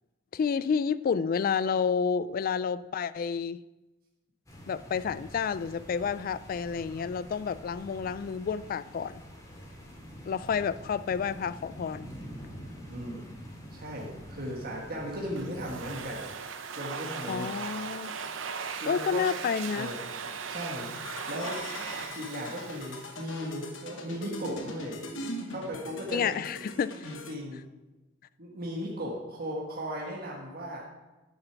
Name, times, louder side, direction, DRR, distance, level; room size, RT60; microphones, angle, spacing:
voice 1, 0.3-3.6 4.7-9.2 10.3-12.1 17.3-18.1 18.8-19.9 26.1-27.1, left 6 dB, 45° left, 17 dB, 0.3 m, -30 dB
sound 1, 4.5-16.1, equal, 20° left, 2.1 m, -46 dB
voice 2, 12.9-13.3 13.7-16.3 16.7-17.7 18.8-19.3 19.7-20.0 20.5-20.9 21.3-21.6 22.1-25.0 25.5-26.3 27.0-27.6 28.4-30.8, equal, 50° right, -3 dB, 1.5 m, -37 dB
Domestic sounds home sounds, 15.4-23.8, right 5 dB, 75° right, 0.8 m, -39 dB
sound 2, 20.9-27.3, left 1 dB, 70° left, 1.1 m, -41 dB
9.7 x 6.6 x 6.0 m, 1.1 s
head